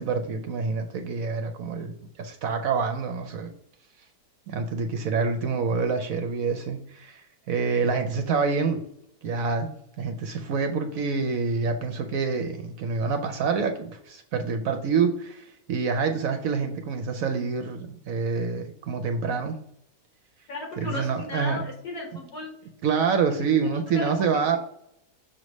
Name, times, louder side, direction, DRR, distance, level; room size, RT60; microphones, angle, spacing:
voice 1, 0.0-1.9 2.2-3.5 4.5-7.2 7.5-8.8 9.2-19.6 20.8-21.6 22.8-24.6, right 5 dB, 65° right, 6 dB, 0.9 m, -27 dB
voice 2, 20.5-22.5 23.6-23.7 23.9-24.0 24.3-24.6, left 2 dB, 75° left, -2 dB, 2.1 m, -35 dB
6.3 x 3.2 x 5.2 m, 0.75 s
omnidirectional pair, 1.8 m